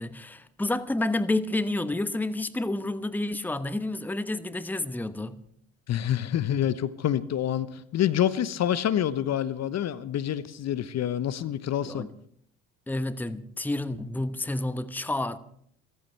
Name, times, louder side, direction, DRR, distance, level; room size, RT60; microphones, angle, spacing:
voice 1, 0.0-5.4 11.8-12.1 12.9-15.4, left 2 dB, 5° left, 1.0 m, -30 dB
voice 2, 5.9-12.0, left 10 dB, 45° left, 1.0 m, -27 dB
30.0 x 14.0 x 3.3 m
figure-of-eight pair, 55°, 37 cm